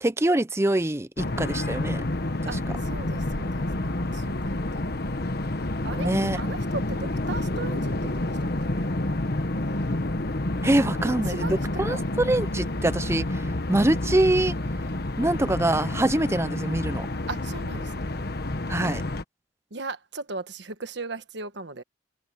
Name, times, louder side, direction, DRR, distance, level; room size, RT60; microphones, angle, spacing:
voice 1, 0.0-2.0 6.0-6.4 10.6-13.4 13.7-14.5 15.2-17.1 18.7-19.0, right 1 dB, 15° right, 0.6 m, -24 dB
sound 1, 1.2-19.2, left 1 dB, 55° left, 1.3 m, -29 dB
voice 2, 2.5-4.9 5.8-8.3 8.6-8.7 11.0-11.6 11.9-12.0 17.3-18.2 19.7-21.8, right 3 dB, 60° right, 1.4 m, -37 dB
head